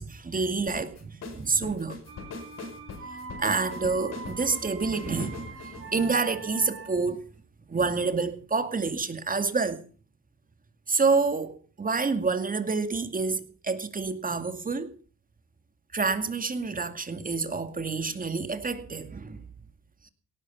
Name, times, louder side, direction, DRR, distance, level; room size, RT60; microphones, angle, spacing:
voice 1, 0.0-2.0 3.4-7.2 7.7-9.8 10.9-14.9 15.9-19.4 20.0-20.1, right 4 dB, 30° right, 2.3 m, -28 dB
sound 1, 0.7-7.0, left 4 dB, 60° left, 5.1 m, -42 dB
sound 2, 2.1-7.2, right 3 dB, 45° right, 6.2 m, -43 dB
18.0 x 13.5 x 5.6 m
cardioid pair, 90°, 30 cm